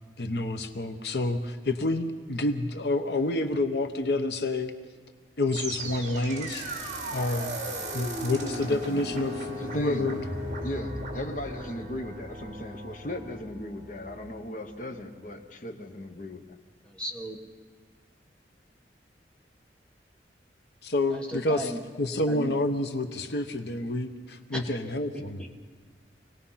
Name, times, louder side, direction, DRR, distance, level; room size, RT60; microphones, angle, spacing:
voice 1, 0.2-4.7 5.4-6.7 7.1-7.6 7.9-10.2 20.8-21.7 22.0-25.4, left 2 dB, 70° left, 7 dB, 1.0 m, -28 dB
sound 1, 5.5-14.6, right 1 dB, 45° right, 2.4 m, -36 dB
voice 2, 9.6-10.1 10.6-16.6, left 1 dB, 45° left, 6 dB, 1.1 m, -37 dB
voice 3, 16.9-17.4 21.1-21.8 22.3-22.5 24.5-24.6 25.1-25.5, right 1 dB, 5° left, 0 dB, 1.5 m, -36 dB
25.5 x 18.5 x 5.7 m, 1.5 s
head